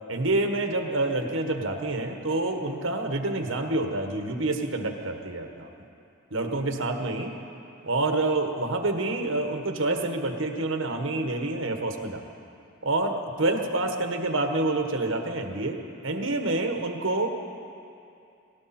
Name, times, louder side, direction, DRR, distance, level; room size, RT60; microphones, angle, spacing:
voice 1, 0.1-5.7 6.3-7.3 7.8-12.2 12.8-17.3, right 2 dB, 70° right, 4 dB, 1.4 m, -27 dB
19.0 x 17.0 x 4.3 m, 2.6 s
head